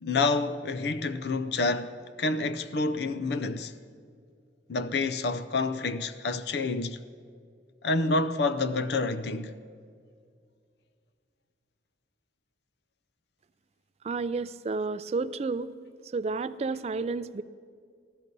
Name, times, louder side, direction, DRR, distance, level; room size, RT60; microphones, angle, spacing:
voice 1, 0.0-3.7 4.7-7.0 7.8-9.6, left 3 dB, 65° left, 0.5 m, -28 dB
voice 2, 14.0-15.8 16.1-17.4, right 4 dB, 35° right, 0.3 m, -31 dB
15.0 x 12.5 x 5.3 m
head